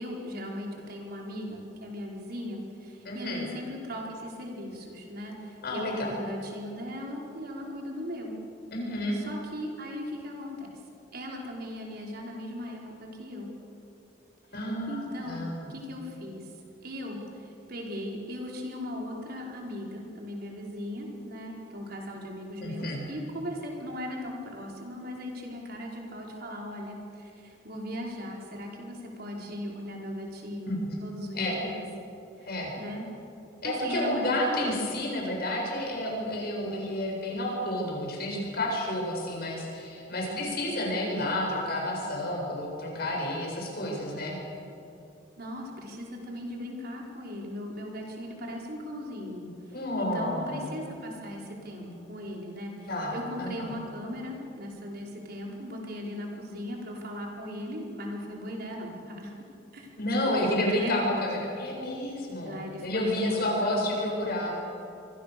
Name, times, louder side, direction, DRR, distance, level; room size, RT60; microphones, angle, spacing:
voice 1, 0.0-8.4 9.1-10.8 11.1-13.5 14.9-16.5 16.8-30.7 31.0-31.8 32.4-33.1 33.6-34.6 45.4-59.3 59.7-59.9 60.3-61.5 62.4-63.7, equal, 60° right, -1 dB, 5.0 m, -38 dB
voice 2, 3.0-3.4 5.6-6.1 8.7-9.2 14.5-15.7 22.6-23.0 30.7-31.0 31.3-31.5 32.4-32.7 33.6-44.4 49.7-50.6 52.9-53.7 60.0-64.5, left 1 dB, 60° left, -1 dB, 7.9 m, -30 dB
27.0 x 24.0 x 7.0 m, 2.7 s
head